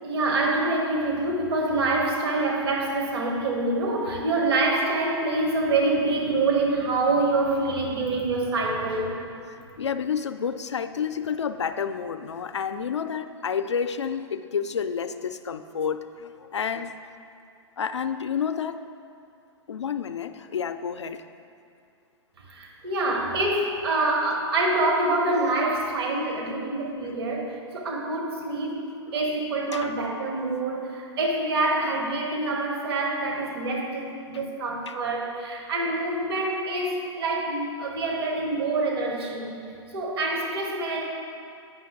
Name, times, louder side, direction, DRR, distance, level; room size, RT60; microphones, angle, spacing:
voice 1, 0.0-9.1 22.5-28.9 29.1-39.6 39.9-41.1, right 2 dB, 60° right, 0 dB, 1.3 m, -26 dB
voice 2, 9.5-16.9 17.8-18.8 19.7-21.2 26.4-26.7 27.0-27.2 29.1-29.2 29.7-29.9 34.3-34.4 34.9-35.0, left 7 dB, 85° left, 9 dB, 0.4 m, -30 dB
9.0 x 5.6 x 3.6 m, 2.4 s
figure-of-eight pair, 110°, 14 cm